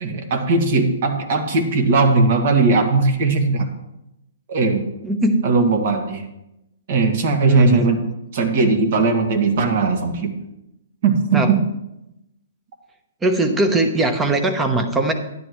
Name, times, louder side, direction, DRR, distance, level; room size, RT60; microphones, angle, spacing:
voice 1, 0.0-3.7 4.5-4.8 5.4-6.2 6.9-8.0 8.3-10.3 11.0-11.6, right 3 dB, 50° right, 3 dB, 2.0 m, -18 dB
voice 2, 5.0-5.4 7.4-7.9 11.3-11.5 13.2-15.1, right 2 dB, 10° right, 6 dB, 1.0 m, -20 dB
12.0 x 10.5 x 3.2 m, 0.89 s
hypercardioid pair, 150°, 0 cm